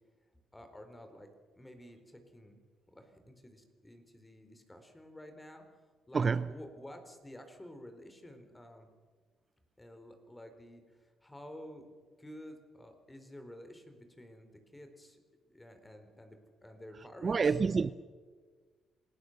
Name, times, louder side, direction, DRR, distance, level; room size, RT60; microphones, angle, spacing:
voice 1, 0.5-1.3 1.5-2.6 2.9-5.6 6.1-8.9 9.8-11.9 12.2-15.2 15.5-17.6, left 1 dB, 15° left, 4.2 m, -51 dB
voice 2, 6.1-6.5 17.2-17.9, right 5 dB, 40° right, 0.6 m, -28 dB
27.0 x 19.0 x 6.7 m
cardioid pair, 90°, 0 cm